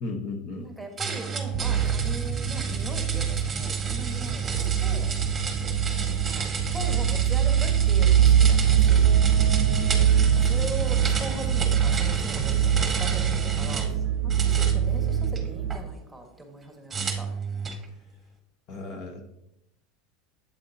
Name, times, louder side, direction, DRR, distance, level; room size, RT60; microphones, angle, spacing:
voice 1, 0.0-0.6 18.7-19.2, left 3 dB, 45° left, 4 dB, 1.0 m, -34 dB
voice 2, 0.6-5.1 6.0-9.1 10.0-14.0 14.2-17.3, right 1 dB, ahead, 2 dB, 1.5 m, -40 dB
sound 1, 1.0-13.9 14.3-15.8 16.9-17.8, right 5 dB, 15° right, 1.2 m, -31 dB
sound 2, 1.5-15.8, right 9 dB, 60° right, 0.5 m, -23 dB
8.0 x 7.8 x 2.7 m, 0.83 s
supercardioid pair, 135°, 0 cm